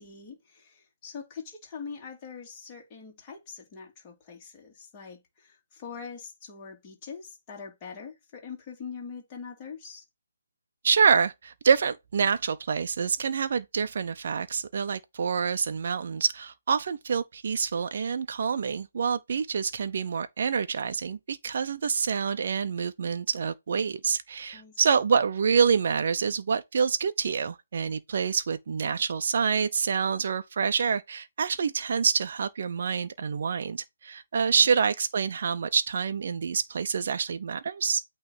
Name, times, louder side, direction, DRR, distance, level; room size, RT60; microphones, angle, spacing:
voice 1, 0.0-10.0 24.5-24.8 34.5-34.7, left 6 dB, 15° left, 2.6 m, -43 dB
voice 2, 10.8-38.0, right 6 dB, 45° right, 0.7 m, -27 dB
8.7 x 3.2 x 4.1 m
hypercardioid pair, 170°, 0 cm